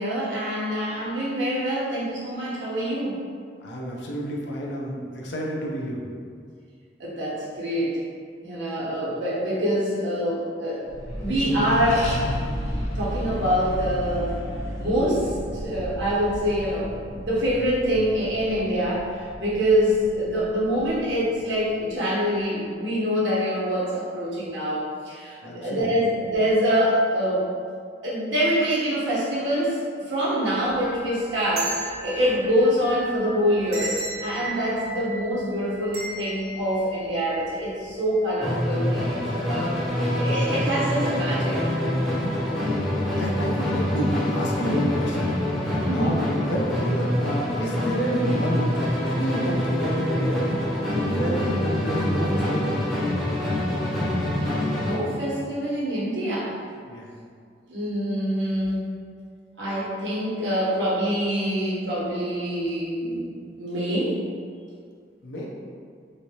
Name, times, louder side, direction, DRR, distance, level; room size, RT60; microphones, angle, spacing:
voice 1, 0.0-3.2 7.0-8.0 8.4-10.8 11.2-12.1 12.9-14.4 14.8-27.5 28.0-29.8 30.1-39.7 40.1-41.6 45.8-46.2 51.1-51.4 54.7-56.6 57.7-58.9 59.6-64.2, equal, 85° right, -7 dB, 0.9 m, -25 dB
voice 2, 3.6-6.0 25.4-25.9 43.2-45.3 45.9-48.7 49.1-50.5 51.0-53.0 56.8-57.1 65.2-65.5, equal, 80° left, -3 dB, 0.5 m, -29 dB
Accelerating revving vroom, 10.9-21.8, equal, 35° left, 0.7 m, -33 dB
sound 1, 30.6-37.8 38.2-38.3 39.2-39.5 39.8-40.0, right 2 dB, 60° right, 0.7 m, -36 dB
Musical instrument, 38.4-55.1, left 1 dB, ahead, 0.5 m, -25 dB
3.2 x 2.6 x 2.8 m, 2.1 s
head